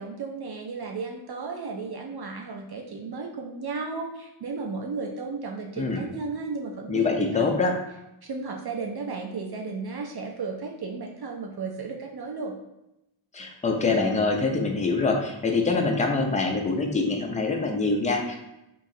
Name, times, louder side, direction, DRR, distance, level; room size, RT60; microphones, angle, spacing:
voice 1, 0.0-7.5 8.2-12.5, right 4 dB, 55° right, 1 dB, 0.5 m, -34 dB
voice 2, 6.9-7.8 13.3-18.4, left 3 dB, 15° left, 2 dB, 0.5 m, -24 dB
3.8 x 2.9 x 2.7 m, 0.89 s
wide cardioid pair, 80°, 48 cm